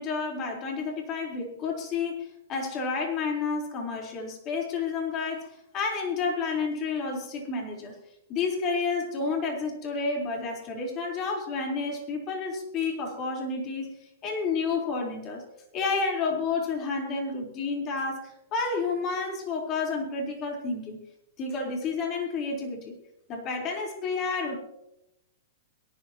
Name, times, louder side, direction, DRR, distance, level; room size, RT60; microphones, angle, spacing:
voice 1, 0.0-8.0 8.3-15.4 15.7-21.0 21.4-23.0 23.3-24.6, left 4 dB, 35° left, 1 dB, 4.2 m, -30 dB
22.5 x 11.5 x 3.0 m, 0.84 s
hypercardioid pair, 120°, 0 cm